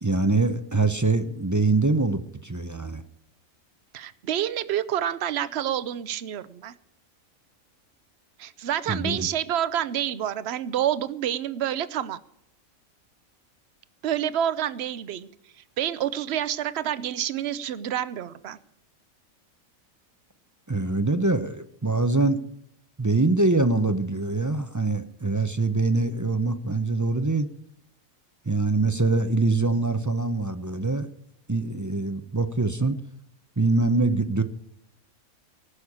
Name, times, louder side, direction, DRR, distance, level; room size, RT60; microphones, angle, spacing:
voice 1, 0.0-3.0 8.9-9.3 20.7-22.4 23.0-27.5 28.5-31.1 31.5-33.0 33.6-34.4, right 3 dB, 20° right, 10 dB, 0.5 m, -24 dB
voice 2, 3.9-6.8 8.4-12.2 14.0-15.3 15.8-18.6, right 10 dB, 55° right, 16 dB, 0.9 m, -28 dB
19.5 x 6.5 x 8.6 m, 0.75 s
omnidirectional pair, 1.4 m